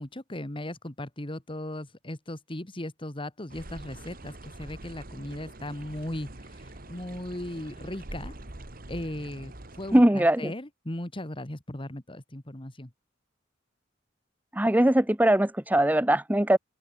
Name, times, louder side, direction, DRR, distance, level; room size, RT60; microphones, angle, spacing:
voice 1, 0.0-8.3 8.9-12.9, left 1 dB, 30° left, 1.9 m, -37 dB
sound 1, 3.5-10.0, right 1 dB, 50° right, 2.3 m, -44 dB
voice 2, 9.9-10.5 14.5-16.6, right 1 dB, 10° right, 0.8 m, -21 dB
open air
head